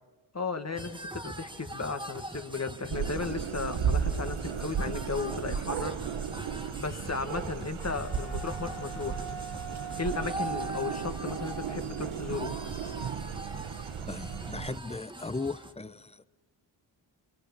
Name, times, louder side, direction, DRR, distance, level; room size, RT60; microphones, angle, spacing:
voice 1, 0.3-6.0 6.6-9.2 10.0-12.5, left 4 dB, 35° left, 8 dB, 1.9 m, -35 dB
sound 1, 0.8-15.7, right 1 dB, 10° right, 1.5 m, -42 dB
sound 2, 2.9-14.8, right 7 dB, 85° right, 1.3 m, -35 dB
Wind instrument woodwind instrument, 7.8-13.3, right 5 dB, 85° left, 2.8 m, -44 dB
voice 2, 14.1-16.2, left 3 dB, 15° left, 15 dB, 0.7 m, -37 dB
28.5 x 25.0 x 7.3 m, 1.3 s
cardioid pair, 75°, 47 cm